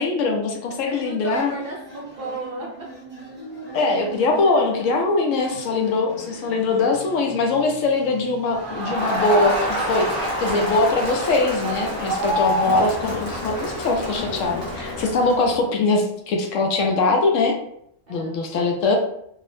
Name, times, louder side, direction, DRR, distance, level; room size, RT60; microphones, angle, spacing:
voice 1, 0.0-1.5 3.7-17.6 18.1-19.0, left 3 dB, 75° left, 2 dB, 0.9 m, -22 dB
voice 2, 0.9-2.7 18.1-18.4, right 2 dB, 60° right, -3 dB, 0.6 m, -33 dB
sound 1, 1.3-15.3, equal, 10° right, 0.7 m, -40 dB
Crowd, 8.5-15.6, equal, 45° left, 1.0 m, -27 dB
2.7 x 2.0 x 3.0 m, 0.71 s
omnidirectional pair, 1.4 m